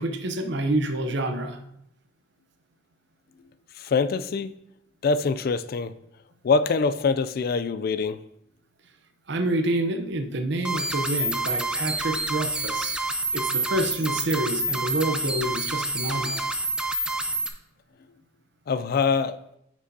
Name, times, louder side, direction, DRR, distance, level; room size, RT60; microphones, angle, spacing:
voice 1, 0.0-1.6 9.3-12.9 13.3-16.4, right 1 dB, 60° right, 7 dB, 0.7 m, -27 dB
voice 2, 3.8-4.6 5.0-5.9 6.4-8.2 18.7-19.4, left 4 dB, 50° left, 13 dB, 0.4 m, -24 dB
sound 1, 10.7-17.5, right 2 dB, 5° right, 0.5 m, -28 dB
9.5 x 6.1 x 2.7 m, 0.79 s
head